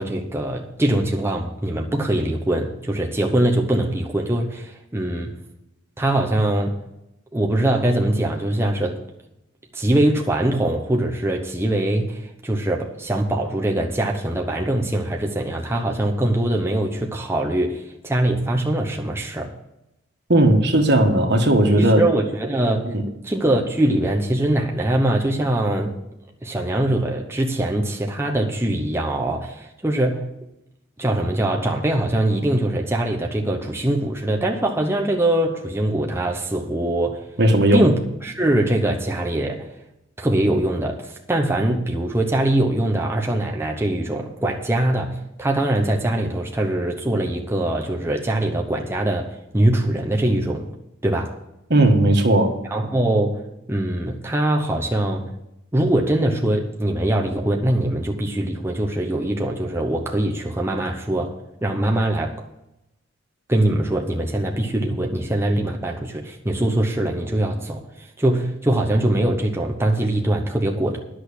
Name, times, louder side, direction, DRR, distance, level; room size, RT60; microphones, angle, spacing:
voice 1, 0.0-5.4 6.0-6.8 7.3-9.1 9.7-19.5 21.8-23.0 23.2-25.9 26.4-30.3 31.0-37.3 37.7-39.7 40.2-50.7 51.0-51.3 52.7-53.4 53.7-55.3 55.7-62.4 63.5-71.0, right 1 dB, 10° right, 0.9 m, -22 dB
voice 2, 20.3-22.0 22.9-23.0 37.4-37.8 51.7-52.6, right 1 dB, 55° right, 1.5 m, -16 dB
10.5 x 6.4 x 8.4 m
head